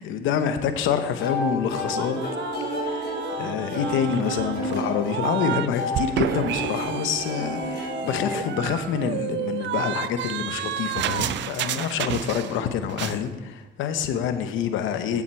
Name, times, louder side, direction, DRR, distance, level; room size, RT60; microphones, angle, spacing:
voice 1, 0.0-2.2 2.9-15.2, left 8 dB, 90° left, 9 dB, 0.8 m, -27 dB
sound 1, 1.2-9.1, left 1 dB, 55° left, 3.2 m, -31 dB
sound 2, 2.0-5.7 5.9-12.6 12.9-13.2, right 12 dB, 65° right, 0.4 m, -31 dB
8.9 x 7.1 x 4.6 m, 1.1 s
cardioid pair, 90°, 20 cm